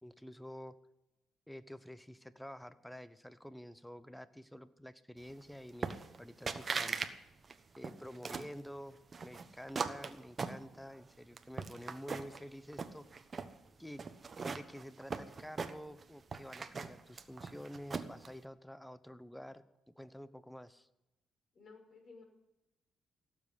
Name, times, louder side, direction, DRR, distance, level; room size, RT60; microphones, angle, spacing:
voice 1, 0.0-0.7 1.5-7.0 7.8-13.3 13.8-14.0 14.4-20.9, equal, 5° left, 14 dB, 0.9 m, -49 dB
sound 1, 5.8-6.2 6.5-7.1 7.4-8.5 9.1-11.0 11.4-12.4 12.7-13.5 14.0-16.0 16.3-18.3, right 4 dB, 35° right, 1.1 m, -39 dB
voice 2, 21.5-22.2, left 4 dB, 45° left, 2 dB, 5.6 m, -55 dB
16.5 x 7.5 x 9.9 m, 0.94 s
cardioid pair, 90°, 0 cm